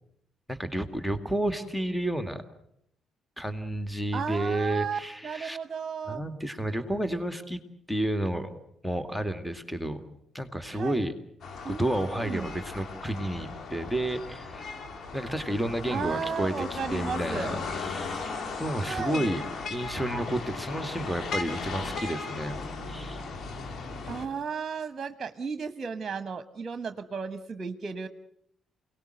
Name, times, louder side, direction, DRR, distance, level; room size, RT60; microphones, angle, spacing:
voice 1, 0.5-2.4 3.4-5.6 6.1-7.6 7.9-8.5 8.8-10.0 10.3-11.1 11.7-14.7 15.1-18.3 18.6-19.4 19.7-22.6 22.9-23.2, right 1 dB, ahead, 8 dB, 2.3 m, -31 dB
voice 2, 4.1-6.2 10.7-11.1 11.6-12.5 15.9-17.5 18.8-19.3 24.1-28.1, right 6 dB, 40° right, 10 dB, 1.2 m, -34 dB
sound 1, 11.4-24.3, left 4 dB, 50° left, 3.4 m, -37 dB
28.5 x 18.5 x 7.9 m, 0.75 s
figure-of-eight pair, 45°, 0 cm